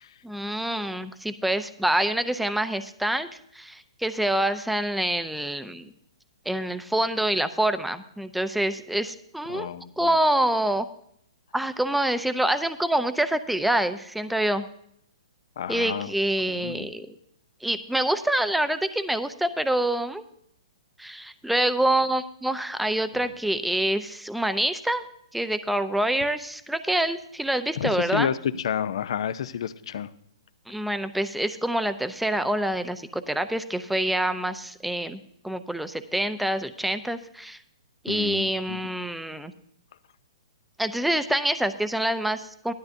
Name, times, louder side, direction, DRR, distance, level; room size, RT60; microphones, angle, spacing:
voice 1, 0.2-3.3 3.5-5.9 6.5-9.7 10.0-10.9 11.5-14.7 15.7-17.1 17.6-20.2 21.0-25.0 25.3-28.3 30.7-35.2 35.4-37.6 38.0-39.5 40.8-42.7, right 1 dB, ahead, 11 dB, 0.5 m, -26 dB
voice 2, 9.5-9.8 15.6-16.1 16.5-16.9 27.8-30.1 38.1-38.8, left 8 dB, 65° left, 13 dB, 0.6 m, -30 dB
16.5 x 12.5 x 2.6 m, 0.71 s
hypercardioid pair, 135°, 3 cm